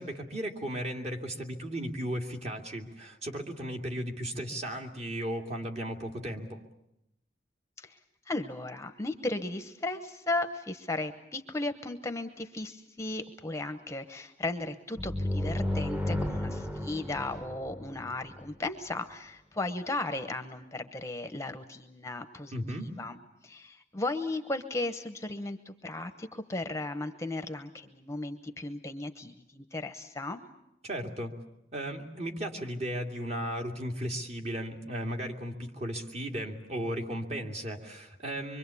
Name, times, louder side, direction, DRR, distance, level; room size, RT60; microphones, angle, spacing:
voice 1, 0.0-6.6 22.5-22.9 30.8-31.3 31.7-38.6, equal, 35° right, 3 dB, 2.5 m, -35 dB
voice 2, 8.3-22.6 23.0-23.2 23.4-30.4, left 2 dB, 15° left, 9 dB, 1.0 m, -35 dB
sound 1, 15.0-18.5, left 1 dB, 10° right, 1.2 m, -33 dB
25.5 x 24.0 x 8.4 m, 0.81 s
head